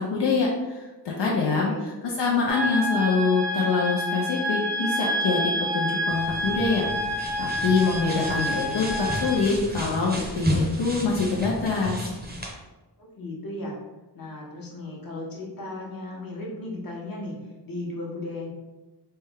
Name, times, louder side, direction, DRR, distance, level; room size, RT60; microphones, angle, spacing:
voice 1, 0.0-12.1, left 4 dB, 85° left, -3 dB, 0.6 m, -25 dB
voice 2, 1.2-1.9 13.0-13.7 14.1-17.3 17.6-18.5, left 2 dB, 55° left, -3 dB, 0.9 m, -35 dB
sound 1, 2.5-9.4, equal, 75° right, 0.7 m, -28 dB
sound 2, 6.1-12.5, equal, 25° right, 0.6 m, -32 dB
3.3 x 2.2 x 3.3 m, 1.1 s
wide cardioid pair, 85°, 41 cm